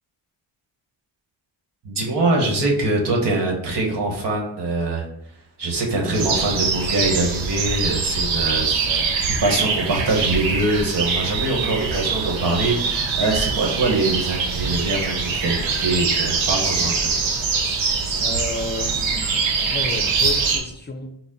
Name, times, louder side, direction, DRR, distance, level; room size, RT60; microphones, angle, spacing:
voice 1, 1.8-5.0 5.6-9.0 9.3-17.1, right 2 dB, 65° right, -1 dB, 1.3 m, -23 dB
sound 1, 6.1-20.6, right 5 dB, 85° right, 0.7 m, -23 dB
voice 2, 8.8-9.3 11.6-11.7 18.2-21.1, left 2 dB, 25° left, 5 dB, 0.6 m, -32 dB
4.1 x 2.1 x 3.8 m, 0.79 s
supercardioid pair, 45°, 45 cm